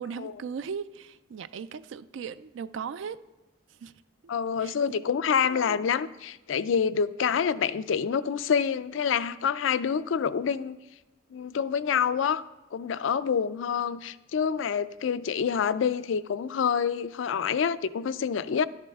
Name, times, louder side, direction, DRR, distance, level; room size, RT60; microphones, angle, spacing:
voice 1, 0.0-3.2 3.7-3.9 4.6-4.8 5.5-5.8, right 6 dB, 80° right, 0.4 m, -38 dB
voice 2, 4.3-10.8 11.3-12.4 12.7-18.7, left 7 dB, 85° left, 0.4 m, -27 dB
11.5 x 10.0 x 3.5 m
head